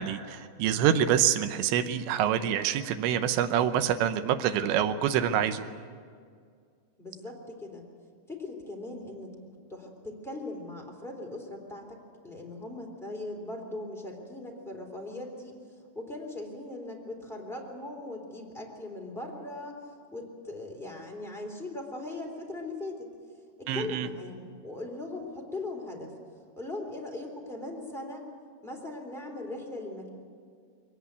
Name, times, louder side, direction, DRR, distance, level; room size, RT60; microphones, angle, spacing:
voice 1, 0.0-5.6 23.7-24.1, right 9 dB, 75° right, 9 dB, 2.9 m, -26 dB
voice 2, 7.0-7.9 8.3-9.4 9.7-15.5 15.9-19.8 20.1-23.1 23.6-26.1 26.6-28.2 28.6-30.1, left 2 dB, ahead, -1 dB, 2.1 m, -39 dB
22.5 x 19.0 x 8.2 m, 2.1 s
omnidirectional pair, 5.7 m